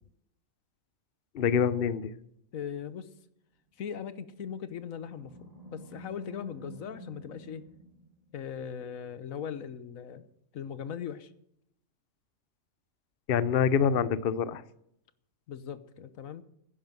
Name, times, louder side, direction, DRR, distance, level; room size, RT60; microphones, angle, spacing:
voice 1, 1.3-2.1 13.3-14.6, left 7 dB, 50° left, 16 dB, 0.8 m, -26 dB
voice 2, 2.5-3.1 3.8-7.6 8.3-10.2 10.5-11.3 15.5-16.4, left 8 dB, 80° left, 14 dB, 1.3 m, -39 dB
Animal, 4.2-8.7, right 1 dB, 30° right, 2.3 m, -49 dB
11.0 x 10.0 x 7.6 m, 0.74 s
omnidirectional pair, 1.4 m